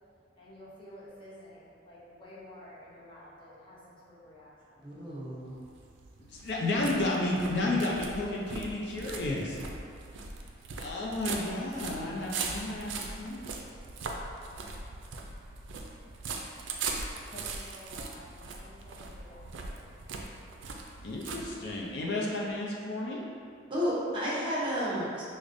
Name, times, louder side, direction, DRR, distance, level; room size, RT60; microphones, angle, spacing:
voice 1, 0.4-4.9 17.3-19.9 21.7-22.1, left 1 dB, 25° left, -8 dB, 0.7 m, -51 dB
voice 2, 4.8-5.5 23.7-25.2, equal, 25° right, -8 dB, 0.7 m, -31 dB
sound 1, 5.5-22.0, right 4 dB, 90° right, 0.4 m, -40 dB
voice 3, 6.2-9.6 10.8-13.4 21.0-23.2, left 2 dB, 65° left, -4 dB, 0.5 m, -32 dB
4.8 x 2.1 x 2.5 m, 2.4 s
head